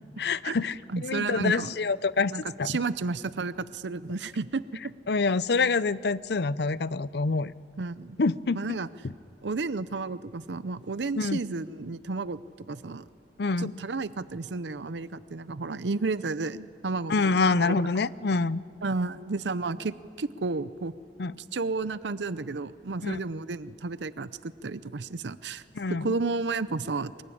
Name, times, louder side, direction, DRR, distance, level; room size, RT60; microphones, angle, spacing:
voice 1, 0.2-0.7 1.0-2.8 5.1-7.5 8.2-8.6 11.2-11.4 13.4-13.7 17.1-18.6 21.2-21.3 23.0-23.2 25.8-26.1, left 4 dB, 65° left, 18 dB, 0.6 m, -26 dB
voice 2, 0.9-1.7 2.2-4.9 7.8-8.2 8.6-8.9 9.4-12.4 12.7-13.0 13.6-18.0 18.8-20.9 21.5-25.6 25.9-27.2, right 3 dB, 80° right, 15 dB, 0.7 m, -32 dB
24.5 x 22.5 x 10.0 m, 2.3 s
head